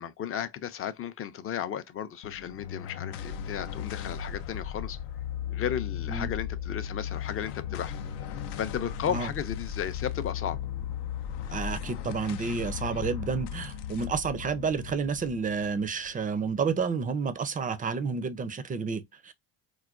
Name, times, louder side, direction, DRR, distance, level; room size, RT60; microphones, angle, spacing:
voice 1, 0.0-5.0 5.5-7.9 8.6-10.6, left 9 dB, 35° left, 0.5 m, -34 dB
sound 1, 2.2-16.8, left 9 dB, 80° left, 0.6 m, -36 dB
voice 2, 11.5-19.3, right 5 dB, 20° right, 0.4 m, -30 dB
4.6 x 2.2 x 2.4 m
cardioid pair, 105°, 40 cm